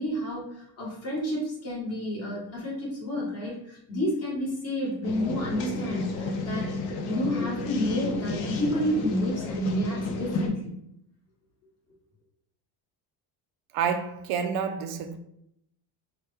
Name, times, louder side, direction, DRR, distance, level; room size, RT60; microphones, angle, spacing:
voice 1, 0.0-10.7, equal, 35° left, 1.4 m, -30 dB
sound 1, 5.0-10.5, left 3 dB, 85° left, 0.7 m, -32 dB
voice 2, 13.7-15.2, right 7 dB, 85° right, 0.5 m, -29 dB
3.5 x 2.2 x 3.0 m
cardioid pair, 140°, 44 cm